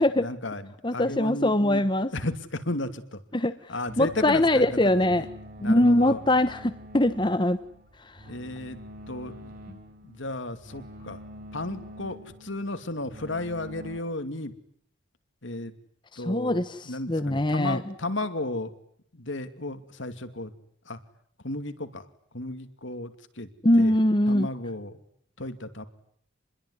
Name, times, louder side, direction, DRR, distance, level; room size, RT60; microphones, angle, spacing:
voice 1, 0.0-1.8 2.1-3.2 3.7-5.2 5.6-6.2 8.3-8.8 9.1-9.5 10.0-11.2 11.5-14.5 15.4-15.7 16.2-18.7 19.1-20.5 20.9-21.0 21.4-22.0 22.3-23.1 23.4-23.5 23.8-23.9 24.3-25.0 25.4-25.8, left 2 dB, 65° left, 9 dB, 2.7 m, -34 dB
voice 2, 0.8-2.1 3.3-3.5 4.0-5.3 5.6-7.6 16.3-17.8 23.6-24.5, left 1 dB, 25° left, 9 dB, 1.1 m, -22 dB
sound 1, 3.9-14.0, equal, 45° right, 7.4 m, -46 dB
28.0 x 22.0 x 9.7 m, 0.65 s
head